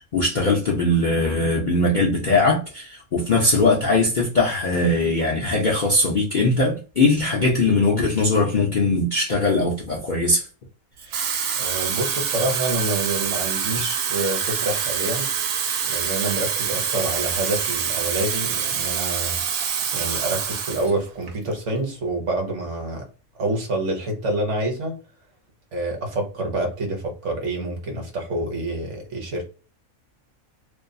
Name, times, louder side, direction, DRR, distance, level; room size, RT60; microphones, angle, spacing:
voice 1, 0.0-10.5, left 2 dB, 55° left, 0.5 m, -20 dB
Water tap faucet / Fill (with liquid), 11.0-20.9 21.3-21.5, right 7 dB, 80° right, 1.0 m, -26 dB
voice 2, 11.6-15.3 15.8-19.4 19.9-23.1 23.4-25.0 25.7-29.4, right 1 dB, 60° right, 1.1 m, -27 dB
2.6 x 2.3 x 2.6 m
omnidirectional pair, 1.5 m